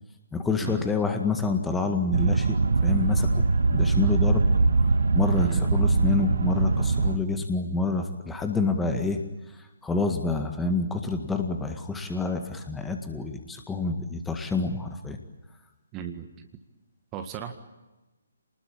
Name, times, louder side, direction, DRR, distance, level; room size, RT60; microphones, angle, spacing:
voice 1, 0.3-4.4 5.1-9.2 9.6-15.2, left 3 dB, 5° left, 5 dB, 1.8 m, -28 dB
sound 1, 2.1-7.2, right 3 dB, 60° right, 1.4 m, -22 dB
voice 2, 5.3-5.6 15.9-16.5 17.1-17.5, right 9 dB, 20° right, 6 dB, 1.8 m, -36 dB
28.0 x 20.0 x 8.8 m, 1.1 s
figure-of-eight pair, 140°, 0 cm